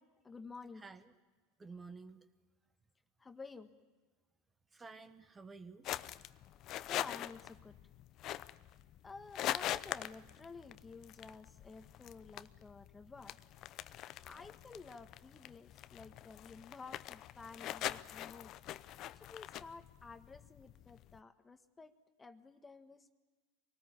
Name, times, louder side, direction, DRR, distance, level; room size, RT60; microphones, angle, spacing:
voice 1, 0.2-0.8 3.2-3.7 6.9-7.8 9.0-13.4 14.2-18.5 19.1-23.1, left 4 dB, 15° left, 9 dB, 1.5 m, -52 dB
voice 2, 1.6-2.2 4.7-5.9, right 4 dB, 20° right, 10 dB, 1.3 m, -51 dB
sound 1, 5.8-21.2, left 13 dB, 45° left, 0.7 m, -44 dB
24.5 x 19.0 x 9.9 m, 1.3 s
hypercardioid pair, 85°, 0 cm